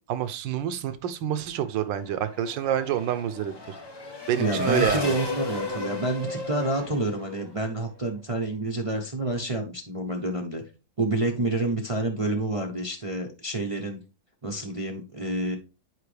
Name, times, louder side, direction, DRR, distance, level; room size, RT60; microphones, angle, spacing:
voice 1, 0.1-3.5 4.3-5.1, right 10 dB, 85° right, 1.4 m, -27 dB
Race car auto racing / Accelerating revving vroom, 1.8-7.9, left 3 dB, 15° left, 1.0 m, -34 dB
voice 2, 4.3-10.6 11.0-14.0 14.4-15.6, right 2 dB, 35° right, 0.5 m, -28 dB
8.0 x 5.0 x 3.2 m
omnidirectional pair, 2.0 m